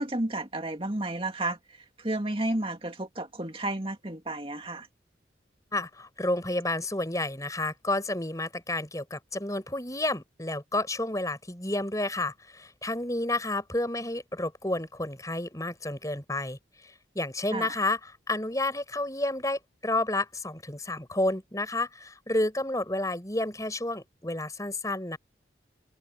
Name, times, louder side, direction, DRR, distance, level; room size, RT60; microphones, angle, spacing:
voice 1, 0.0-4.9 17.5-17.7, right 1 dB, 30° right, 2.3 m, -32 dB
voice 2, 5.7-25.2, left 2 dB, 20° left, 5.9 m, -30 dB
head